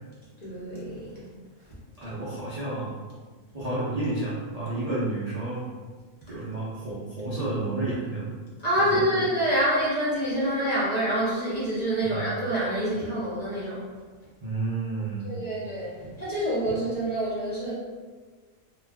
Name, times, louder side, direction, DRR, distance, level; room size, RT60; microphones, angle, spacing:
voice 1, 0.4-1.2 8.6-13.8 15.2-17.7, right 1 dB, 40° left, -9 dB, 0.7 m, -27 dB
voice 2, 2.0-2.9 3.5-5.6 6.3-8.3 8.9-9.2 12.0-12.3 14.4-15.3, right 2 dB, 50° right, -9 dB, 0.4 m, -31 dB
2.4 x 2.3 x 3.4 m, 1.5 s
omnidirectional pair, 1.4 m